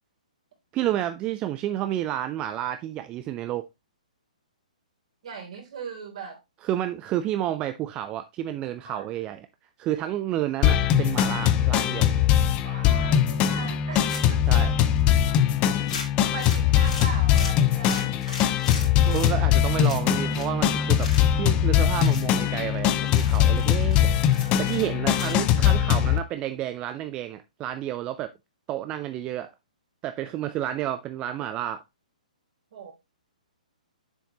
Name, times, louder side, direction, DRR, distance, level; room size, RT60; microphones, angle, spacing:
voice 1, 0.7-3.7 6.6-9.5 9.8-12.2 14.5-14.7 19.0-21.1 21.4-24.0 24.6-28.3 28.7-29.5 30.0-31.8, right 12 dB, 25° right, 0.4 m, -30 dB
voice 2, 5.2-6.4 8.8-9.1 12.6-14.6 15.1-18.9 24.3-24.8 32.7-32.9, right 5 dB, 55° right, 3.0 m, -40 dB
sound 1, 10.6-26.2, left 10 dB, 25° left, 0.7 m, -21 dB
sound 2, 14.0-14.5 15.0-15.1 15.3-15.4 15.9-19.3 19.8-20.6 20.8-21.4 21.9-22.2 22.7-22.8 23.0-25.4, left 5 dB, 60° left, 3.1 m, -38 dB
7.1 x 6.9 x 2.9 m
figure-of-eight pair, 120°, 4 cm